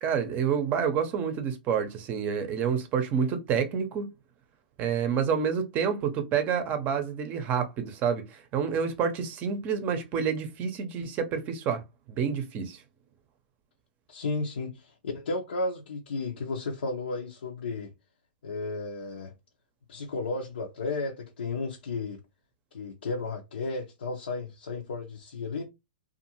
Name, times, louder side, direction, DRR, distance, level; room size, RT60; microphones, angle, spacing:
voice 1, 0.0-4.1 4.8-11.8 12.1-12.8, right 7 dB, 30° right, 0.6 m, -28 dB
voice 2, 14.1-17.9 18.4-19.3 19.9-22.2 22.7-25.7, left 3 dB, 85° left, 0.7 m, -33 dB
2.6 x 2.4 x 2.9 m
hypercardioid pair, 130°, 5 cm